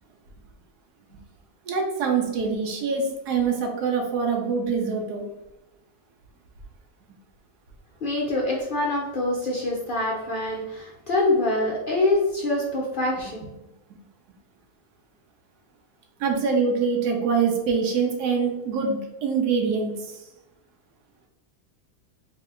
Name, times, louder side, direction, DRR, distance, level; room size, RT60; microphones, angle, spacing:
voice 1, 1.7-5.2 16.2-20.2, right 5 dB, 90° right, 1 dB, 1.3 m, -24 dB
voice 2, 8.0-13.4, left 2 dB, 60° left, -3 dB, 0.5 m, -25 dB
3.3 x 2.8 x 3.7 m, 0.96 s
omnidirectional pair, 1.6 m